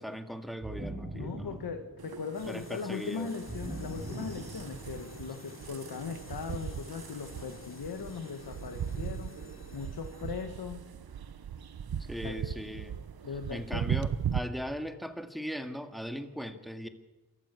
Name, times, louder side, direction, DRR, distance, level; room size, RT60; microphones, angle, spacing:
voice 1, 0.0-1.6 2.5-3.3 12.1-13.0 13.5-16.9, equal, ahead, 7 dB, 2.1 m, -39 dB
sound 1, 0.6-2.3 3.5-5.1, right 1 dB, 20° right, 3.9 m, -41 dB
voice 2, 1.1-10.8 12.2-12.4 13.2-13.9, left 5 dB, 85° left, 5 dB, 1.6 m, -39 dB
sound 2, 2.0-14.4, right 8 dB, 80° right, 1.0 m, -39 dB
sound 3, 2.3-12.0, left 3 dB, 35° left, 2.8 m, -52 dB
27.0 x 14.0 x 8.4 m, 1.2 s
cardioid pair, 60°, 36 cm